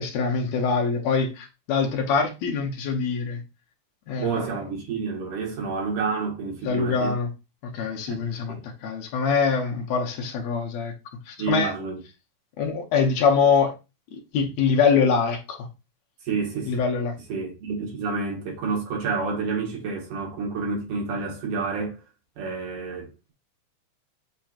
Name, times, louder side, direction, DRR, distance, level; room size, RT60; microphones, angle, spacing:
voice 1, 0.0-3.4 4.1-4.5 6.6-7.3 7.6-8.6 8.8-10.9 11.3-11.7 12.6-13.7 14.1-15.7 16.7-17.2, left 5 dB, 70° left, 2.0 m, -24 dB
voice 2, 4.2-7.1 8.1-8.6 11.4-12.0 16.2-16.7 17.3-22.0 22.4-23.3, right 4 dB, 90° right, 3.0 m, -29 dB
7.6 x 2.9 x 2.4 m
omnidirectional pair, 3.4 m